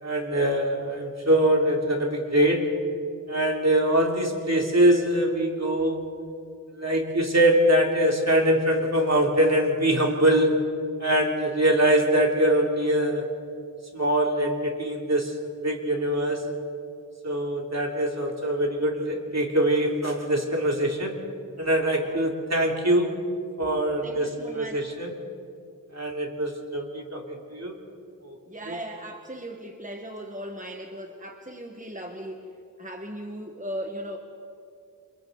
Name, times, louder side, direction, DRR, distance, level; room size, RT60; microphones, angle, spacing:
voice 1, 0.0-2.7 3.3-6.0 6.7-10.7 11.0-13.3 13.9-15.4 15.6-16.5 17.2-21.2 21.6-23.1 23.6-25.1 25.9-27.7 28.2-28.4 28.7-28.8, right 1 dB, 50° right, 1 dB, 3.1 m, -23 dB
voice 2, 24.0-24.9 28.5-32.5 32.8-34.2, equal, 25° right, 3 dB, 1.5 m, -38 dB
30.0 x 27.0 x 4.0 m, 2.4 s
wide cardioid pair, 60°, 33 cm